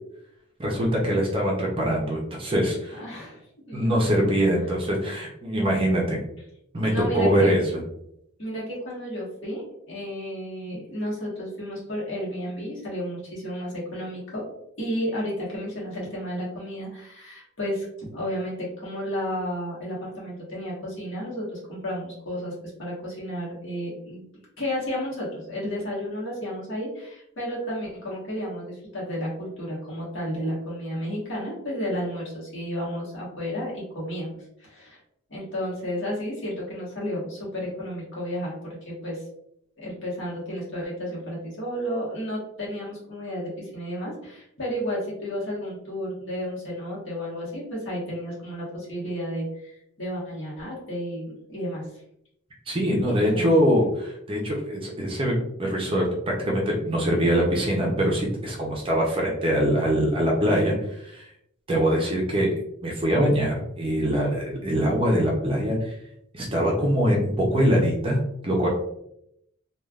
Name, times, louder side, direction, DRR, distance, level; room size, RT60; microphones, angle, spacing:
voice 1, 0.6-3.0 3.7-6.2 6.7-7.8 52.7-61.2 61.7-62.5 62.8-65.8 66.3-68.7, equal, 25° right, -2 dB, 0.5 m, -23 dB
voice 2, 2.9-3.4 3.7-4.3 6.9-7.5 8.4-14.5 14.8-24.3 24.6-35.0 35.3-39.2 39.8-52.0 53.1-53.5, equal, 55° left, -6 dB, 1.3 m, -32 dB
3.3 x 2.3 x 2.3 m, 0.76 s
head